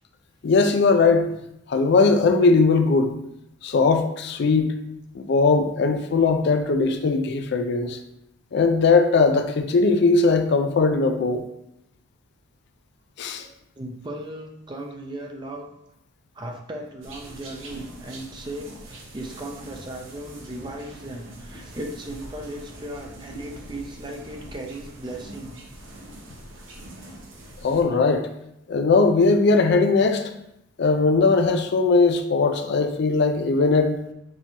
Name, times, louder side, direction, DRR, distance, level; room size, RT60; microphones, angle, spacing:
voice 1, 0.4-1.3 1.7-3.2 3.6-4.8 5.1-8.0 8.5-11.4 13.2-13.4 27.6-28.3 28.7-30.2 30.8-34.0, left 4 dB, 55° left, 6 dB, 0.4 m, -19 dB
voice 2, 13.8-15.7 16.3-25.6, right 1 dB, 20° right, 2 dB, 0.5 m, -37 dB
sound 1, 17.0-27.8, right 1 dB, 70° right, 0.9 m, -42 dB
6.1 x 3.0 x 2.8 m, 0.81 s
head